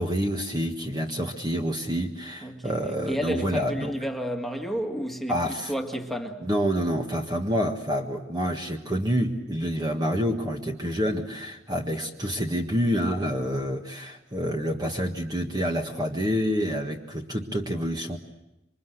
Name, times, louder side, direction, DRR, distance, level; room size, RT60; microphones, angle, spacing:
voice 1, 0.0-3.9 5.3-5.7 6.4-18.2, equal, 20° right, 1.6 m, -28 dB
voice 2, 2.4-6.4, equal, ahead, 2.0 m, -31 dB
27.5 x 24.5 x 8.0 m
head